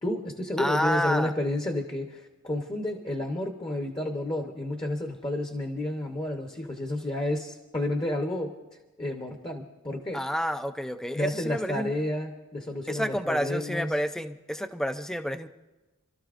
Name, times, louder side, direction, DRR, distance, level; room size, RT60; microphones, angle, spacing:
voice 1, 0.0-8.5 9.0-10.2 11.1-13.9, left 1 dB, 20° left, 3 dB, 0.9 m, -31 dB
voice 2, 0.6-1.3 10.1-11.9 12.9-15.5, equal, ahead, 9 dB, 0.4 m, -29 dB
29.5 x 13.0 x 2.5 m, 1.1 s
head